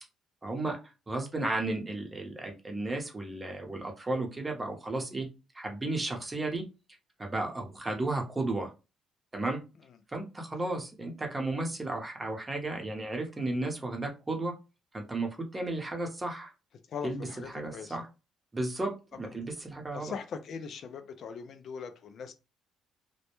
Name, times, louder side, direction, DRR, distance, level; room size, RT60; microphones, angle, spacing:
voice 1, 0.4-0.8 1.1-5.3 5.5-6.6 7.2-8.7 9.3-9.6 10.1-14.5 14.9-16.5 17.0-17.3 17.5-18.0 18.5-20.1, right 2 dB, 20° right, 0.8 m, -33 dB
voice 2, 16.9-18.0 19.2-19.4 19.9-22.3, left 6 dB, 60° left, 0.4 m, -41 dB
2.1 x 2.1 x 2.9 m
cardioid pair, 90°, 0 cm